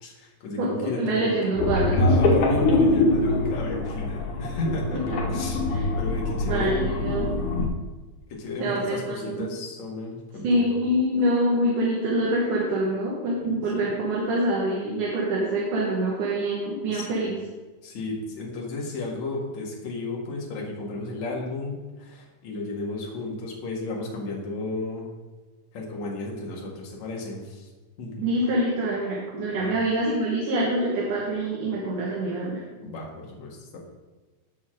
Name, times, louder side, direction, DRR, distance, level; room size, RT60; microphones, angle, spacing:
voice 1, 0.0-1.4 2.0-5.0 5.3-5.6 6.0-6.9 8.3-10.8 13.4-13.9 16.9-17.1 17.8-25.1 25.7-27.7 28.0-28.2 29.5-29.7 32.8-33.8, left 2 dB, 65° left, -2 dB, 3.2 m, -33 dB
voice 2, 0.6-2.0 5.7-5.8 6.4-7.3 8.6-9.5 10.4-17.4 28.2-32.6, right 1 dB, 80° right, -4 dB, 3.2 m, -25 dB
sound 1, 1.6-7.7, left 2 dB, 90° left, 3.3 m, -23 dB
16.5 x 6.4 x 3.8 m, 1.3 s
omnidirectional pair, 3.5 m